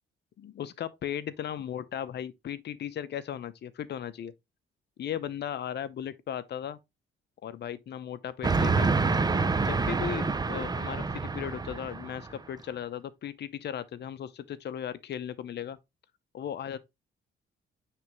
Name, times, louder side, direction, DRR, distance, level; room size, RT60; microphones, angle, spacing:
voice 1, 0.4-4.3 5.0-6.8 7.4-8.9 9.6-15.8 16.3-16.8, left 9 dB, 60° left, 0.7 m, -36 dB
Train, 8.4-12.3, right 4 dB, 20° right, 0.6 m, -27 dB
9.3 x 3.4 x 3.1 m
cardioid pair, 90°, 20 cm